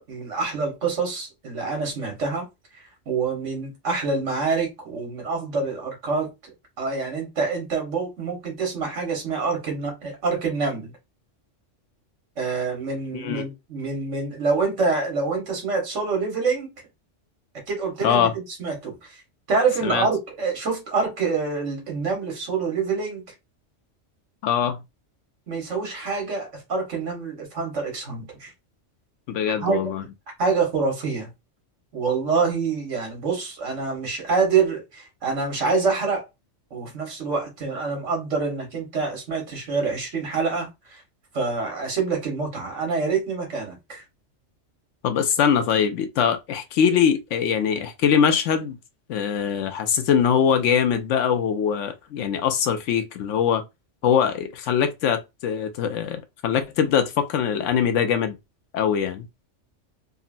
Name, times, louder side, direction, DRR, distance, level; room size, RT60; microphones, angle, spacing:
voice 1, 0.0-2.5 3.1-6.3 6.8-10.9 12.4-16.7 17.7-19.2 19.5-23.2 25.5-28.5 29.6-29.8 30.4-31.3 31.9-36.3 36.7-41.0 41.3-44.0, right 4 dB, 75° right, 1.6 m, -26 dB
voice 2, 13.1-13.5 18.0-18.3 19.8-20.1 24.4-24.8 29.3-30.0 45.0-48.8 49.1-53.6 54.0-58.4 58.7-59.3, left 8 dB, 80° left, 0.9 m, -22 dB
3.7 x 2.1 x 2.5 m
omnidirectional pair, 1.3 m